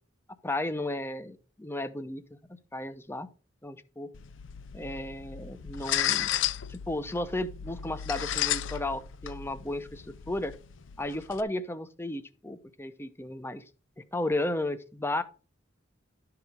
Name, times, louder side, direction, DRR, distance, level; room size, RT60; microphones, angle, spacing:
voice 1, 0.4-2.4 2.7-3.3 3.6-4.1 4.7-6.3 6.7-10.5 11.0-13.6 14.0-15.2, left 1 dB, 15° left, 0.8 m, -34 dB
sound 1, 4.1-11.4, left 11 dB, 80° left, 0.6 m, -34 dB
12.0 x 4.8 x 5.1 m
head